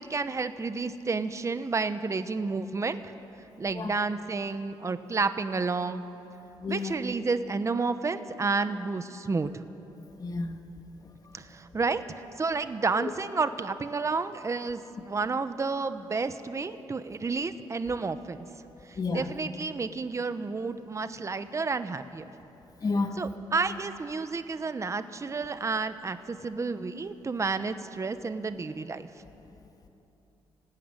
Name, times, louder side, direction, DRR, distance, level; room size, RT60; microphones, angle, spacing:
voice 1, 0.0-3.1 3.6-6.0 6.7-9.6 11.3-12.0 12.4-14.8 15.1-18.5 18.9-22.2 23.2-29.1, right 4 dB, 30° right, 11 dB, 1.1 m, -30 dB
voice 2, 6.6-7.0 10.2-10.5 13.0-13.1 19.0-19.3 22.8-23.2, left 3 dB, 40° left, 5 dB, 2.1 m, -30 dB
25.0 x 17.0 x 9.8 m, 2.9 s
cardioid pair, 95°, 10 cm